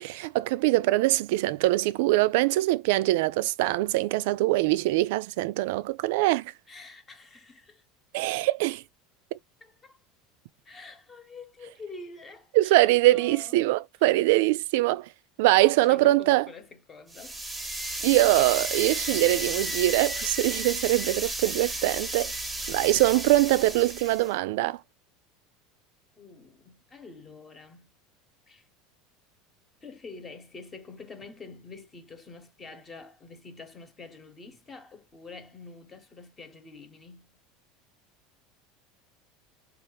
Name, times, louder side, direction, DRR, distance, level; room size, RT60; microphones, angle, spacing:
voice 1, 0.0-6.5 8.1-8.8 12.5-15.1 15.4-16.5 18.0-22.3 22.7-24.8, right 18 dB, 75° right, 0.3 m, -23 dB
voice 2, 6.7-7.8 9.6-10.0 10.6-13.6 15.7-17.4 18.0-18.7 21.6-22.0 23.5-23.8 26.2-27.9 28.5-28.7 29.8-37.3, left 3 dB, 25° left, 1.0 m, -47 dB
sound 1, 17.1-24.3, right 2 dB, 5° right, 0.8 m, -33 dB
4.2 x 2.4 x 3.0 m
supercardioid pair, 125°, 0 cm